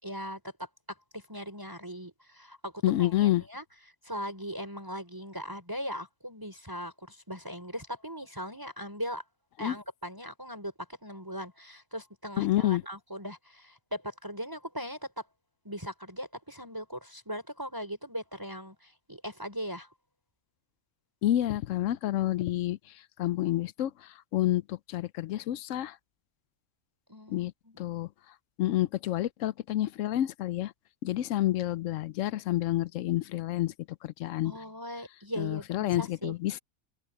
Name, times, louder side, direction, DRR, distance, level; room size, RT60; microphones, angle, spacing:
voice 1, 0.0-3.6 4.0-9.2 9.6-15.2 15.6-19.9 27.1-27.8 34.4-36.4, equal, 15° right, 4.3 m, -39 dB
voice 2, 2.8-3.4 9.6-9.7 12.4-12.8 21.2-22.8 23.2-23.9 24.3-25.9 27.3-27.5 27.8-28.1 28.6-30.7 31.0-33.7 34.0-34.5 35.4-36.6, left 14 dB, 75° left, 0.9 m, -28 dB
open air
omnidirectional pair, 1.4 m